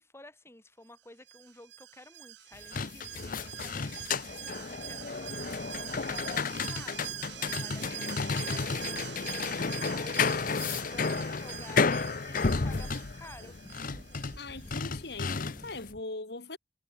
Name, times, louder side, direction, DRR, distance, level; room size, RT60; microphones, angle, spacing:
voice 1, 0.0-10.3 10.6-13.6, left 1 dB, 15° left, 5.2 m, -53 dB
Alarm, 1.3-14.8 15.1-15.2, right 13 dB, 80° right, 0.9 m, -44 dB
sound 1, 2.5-15.8, left 4 dB, 50° left, 0.9 m, -32 dB
sound 2, 12.7-16.0, equal, 15° right, 2.7 m, -54 dB
voice 2, 14.3-16.6, left 2 dB, 70° left, 3.0 m, -40 dB
head